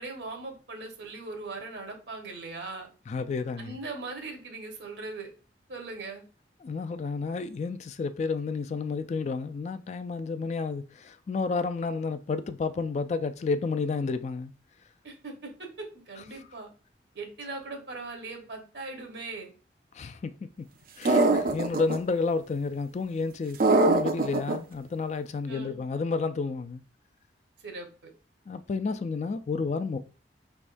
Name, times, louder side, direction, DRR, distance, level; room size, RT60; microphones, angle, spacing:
voice 1, 0.0-2.9 3.6-5.3 5.7-6.2 15.0-16.7 17.1-19.5 25.5-25.8 27.6-28.1, right 3 dB, 80° right, 1.2 m, -40 dB
voice 2, 3.1-3.8 6.6-14.5 19.9-20.4 21.0-23.6 23.9-26.8 28.5-30.0, left 4 dB, 40° left, 0.3 m, -31 dB
sound 1, 21.1-22.0 23.6-24.6, right 2 dB, 50° right, 0.5 m, -22 dB
5.2 x 3.5 x 2.5 m
head